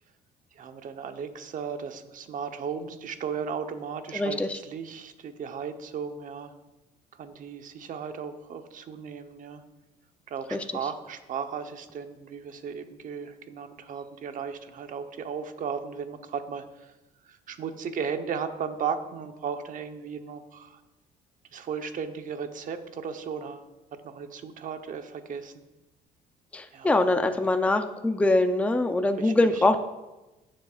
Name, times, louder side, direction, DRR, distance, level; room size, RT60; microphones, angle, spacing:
voice 1, 0.5-6.5 7.1-9.6 10.3-16.9 17.2-20.8 21.5-23.7 24.0-25.5 26.7-27.0 29.2-29.7, right 6 dB, 50° right, 7 dB, 1.0 m, -36 dB
voice 2, 4.1-4.6 10.5-10.6 26.5-29.8, left 2 dB, 10° left, 7 dB, 0.6 m, -23 dB
16.0 x 7.6 x 2.4 m, 1.1 s
cardioid pair, 110°, 17 cm